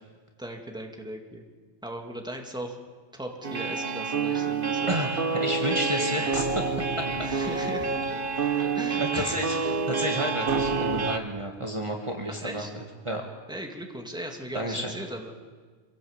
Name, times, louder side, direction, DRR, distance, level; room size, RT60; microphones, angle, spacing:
voice 1, 0.4-1.5 1.8-2.8 3.1-4.9 7.2-7.9 8.6-9.8 12.4-12.7 13.5-15.3, right 1 dB, 5° right, 2 dB, 2.3 m, -38 dB
sound 1, 3.4-11.2, right 4 dB, 55° right, 1.4 m, -28 dB
voice 2, 4.9-6.7 7.2-7.6 8.3-8.6 9.0-9.6 9.9-12.6 13.0-13.3 14.5-14.9, right 1 dB, 30° right, 1 dB, 2.0 m, -31 dB
25.5 x 17.0 x 8.1 m, 1.5 s
omnidirectional pair, 1.1 m